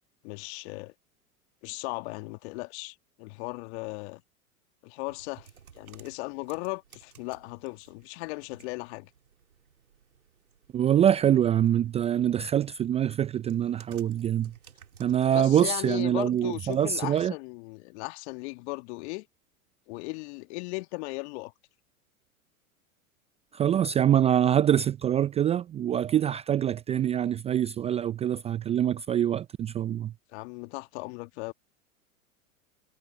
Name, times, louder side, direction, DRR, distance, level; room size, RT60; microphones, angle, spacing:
voice 1, 0.2-0.9 1.6-4.2 4.8-5.5 5.8-9.1 15.3-19.3 19.9-21.5 30.3-31.5, left 26 dB, 50° left, 1.7 m, -37 dB
sound 1, 5.1-17.2, right 7 dB, 80° right, 4.2 m, -56 dB
voice 2, 10.7-14.5 15.0-17.3 23.5-30.1, right 10 dB, 15° right, 0.5 m, -25 dB
hypercardioid pair, 100°, 42 cm